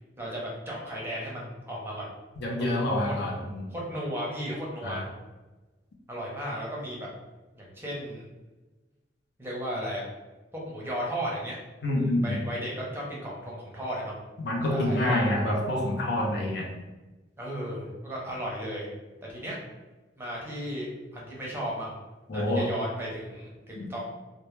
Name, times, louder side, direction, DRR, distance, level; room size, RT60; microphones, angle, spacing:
voice 1, 0.2-2.1 2.6-3.1 3.7-5.0 6.1-7.1 7.5-8.2 9.4-10.0 10.7-11.6 12.0-14.2 14.7-15.2 17.4-18.9 19.2-19.6 20.2-22.0 22.3-24.0, equal, 15° right, -4 dB, 0.6 m, -35 dB
voice 2, 2.4-3.7 4.8-5.0 11.8-12.4 14.4-16.7 22.3-22.7 23.7-23.9, left 1 dB, 65° left, -1 dB, 0.5 m, -27 dB
2.1 x 2.0 x 3.0 m, 1.2 s
head